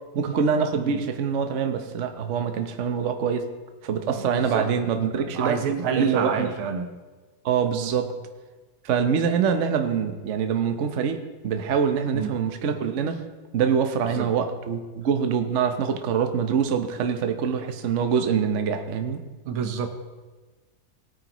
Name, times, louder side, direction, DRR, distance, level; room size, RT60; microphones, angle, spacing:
voice 1, 0.1-3.5 3.8-5.6 6.0-6.5 7.4-8.1 8.8-13.2 13.5-19.2, right 7 dB, 55° right, 6 dB, 0.8 m, -25 dB
voice 2, 4.1-4.7 5.2-6.9 12.1-12.3 14.1-14.3 19.4-19.9, right 6 dB, 80° right, 7 dB, 1.8 m, -28 dB
17.5 x 9.1 x 3.0 m, 1.3 s
omnidirectional pair, 2.3 m